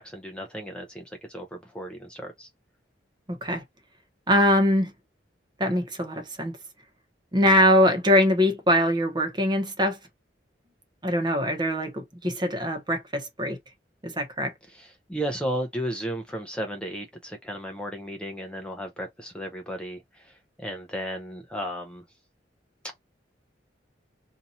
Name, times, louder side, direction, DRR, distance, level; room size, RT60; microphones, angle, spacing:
voice 1, 0.0-2.5 14.7-22.0, equal, 5° left, 0.6 m, -34 dB
voice 2, 3.3-3.6 4.3-4.9 5.6-6.6 7.3-10.0 11.0-13.6 14.0-14.5, equal, 25° right, 0.9 m, -22 dB
2.8 x 2.5 x 4.1 m
head